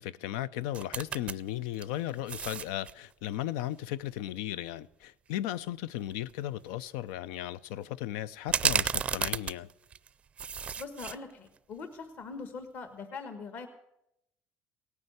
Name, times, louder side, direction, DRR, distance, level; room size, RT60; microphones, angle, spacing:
voice 1, 0.0-9.7, left 13 dB, 90° left, 0.5 m, -36 dB
sound 1, 0.7-1.4 1.7-2.9 5.6-5.7 6.1-6.3 8.5-10.1 10.4-11.2 11.6-11.7, right 7 dB, 30° right, 0.5 m, -31 dB
voice 2, 10.8-13.7, left 4 dB, 50° left, 1.4 m, -42 dB
17.5 x 9.8 x 8.0 m
cardioid pair, 125°, 4 cm